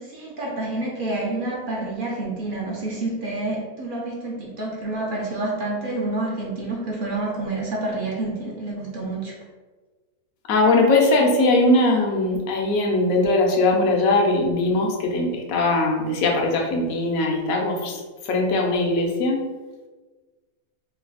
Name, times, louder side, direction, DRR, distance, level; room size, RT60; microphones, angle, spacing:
voice 1, 0.0-9.3, right 2 dB, 50° right, -3 dB, 0.7 m, -28 dB
voice 2, 10.5-19.4, left 2 dB, 75° left, 1 dB, 1.1 m, -20 dB
3.2 x 2.3 x 3.8 m, 1.3 s
omnidirectional pair, 1.5 m